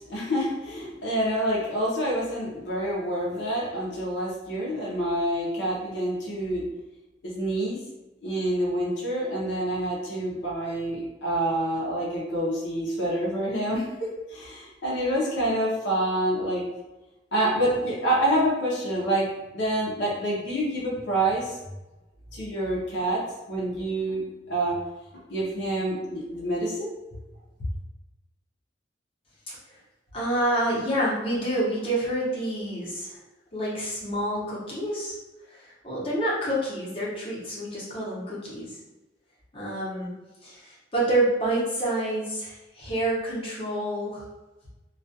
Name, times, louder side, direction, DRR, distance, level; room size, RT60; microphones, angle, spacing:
voice 1, 0.0-6.6 7.2-7.8 8.2-16.6 17.3-19.3 19.5-21.6 22.3-24.2 24.5-24.8 25.3-26.9, right 1 dB, 70° left, -5 dB, 0.6 m, -27 dB
voice 2, 30.1-33.1 33.5-35.2 35.5-38.8 39.5-40.1 40.4-44.2, right 1 dB, 30° left, -7 dB, 0.8 m, -28 dB
2.3 x 2.2 x 2.6 m, 1.1 s
head